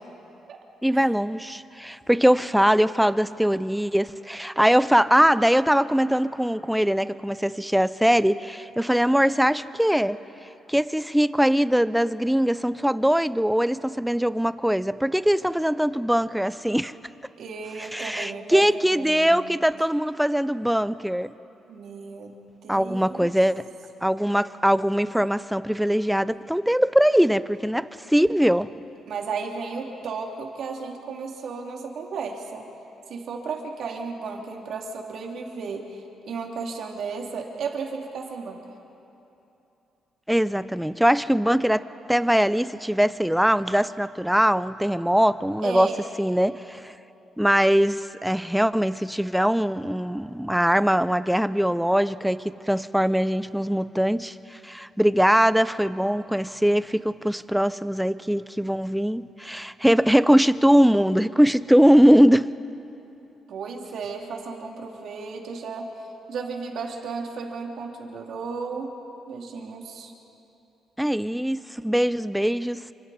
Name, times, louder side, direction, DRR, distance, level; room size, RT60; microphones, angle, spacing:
voice 1, 0.8-10.2 10.7-16.9 17.9-21.3 22.7-23.7 24.0-28.7 40.3-41.8 42.1-45.9 46.2-46.9 47.4-54.3 54.6-62.5 71.0-72.9, equal, ahead, 15 dB, 0.5 m, -21 dB
voice 2, 17.4-19.6 21.7-22.4 22.6-23.3 29.1-32.6 33.1-38.6 45.6-46.0 63.5-65.9 66.3-68.9 69.3-70.1, right 5 dB, 65° right, 1 dB, 2.8 m, -34 dB
28.0 x 25.5 x 4.2 m, 2.9 s
cardioid pair, 90°, 0 cm